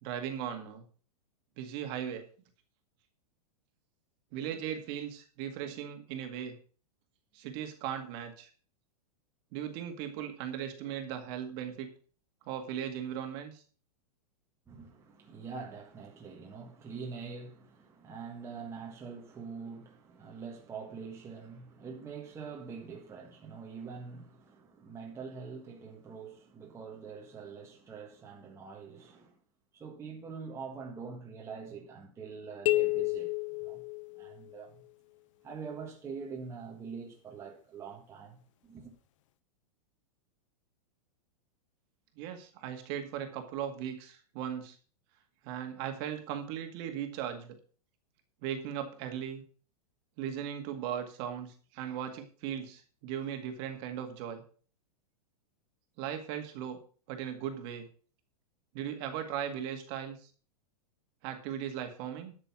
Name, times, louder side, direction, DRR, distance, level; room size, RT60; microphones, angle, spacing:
voice 1, 0.0-0.8 1.6-2.2 4.3-6.6 7.3-8.5 9.5-11.9 12.5-13.6 42.2-44.8 45.4-47.6 48.4-49.4 50.2-54.4 56.0-56.8 57.1-57.9 58.7-60.3 61.2-62.4, right 9 dB, 40° right, 2.0 m, -38 dB
voice 2, 14.7-29.4 29.7-33.3 33.6-33.8 34.1-34.8 35.4-38.9, right 5 dB, 15° right, 1.6 m, -44 dB
sound 1, 32.7-34.6, left 19 dB, 55° left, 0.6 m, -31 dB
11.0 x 6.8 x 6.0 m
supercardioid pair, 155°, 20 cm